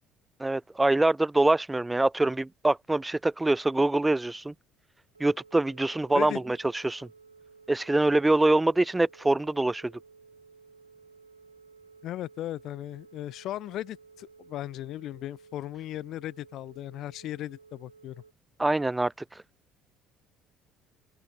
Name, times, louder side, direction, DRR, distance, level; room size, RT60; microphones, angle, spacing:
voice 1, 0.4-4.5 5.2-7.1 7.7-9.9 18.6-19.4, right 2 dB, 10° right, 0.3 m, -25 dB
Telephone, 5.1-18.3, right 5 dB, 85° right, 2.5 m, -55 dB
voice 2, 12.0-18.2, left 13 dB, 55° left, 1.8 m, -37 dB
open air
figure-of-eight pair, 55°, 0 cm